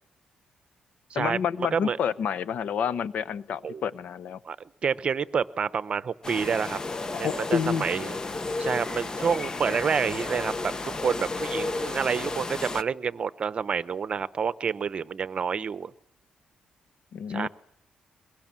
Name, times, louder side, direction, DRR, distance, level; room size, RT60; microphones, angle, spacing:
voice 1, 1.1-4.4 7.1-7.8 17.1-17.5, left 7 dB, 75° left, 15 dB, 0.9 m, -29 dB
voice 2, 4.8-6.8 7.2-8.1 8.6-15.9 17.3-17.5, right 6 dB, 45° right, 15 dB, 0.9 m, -28 dB
sound 1, 6.2-12.8, left 3 dB, 30° left, 1.0 m, -33 dB
22.5 x 22.0 x 7.6 m, 0.74 s
cardioid pair, 100°, 2 cm